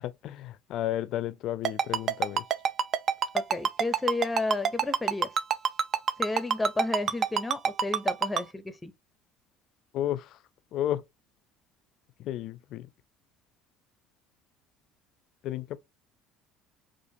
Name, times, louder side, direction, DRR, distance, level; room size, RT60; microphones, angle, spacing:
voice 1, 0.0-2.4 9.9-10.4 10.7-11.0 12.2-12.9 15.4-15.8, left 12 dB, 60° left, 0.4 m, -32 dB
Ringtone, 1.6-8.4, right 7 dB, 45° right, 0.4 m, -25 dB
voice 2, 3.3-5.3 6.2-8.9, left 2 dB, 15° left, 0.6 m, -31 dB
4.4 x 2.5 x 2.6 m
supercardioid pair, 95°, 0 cm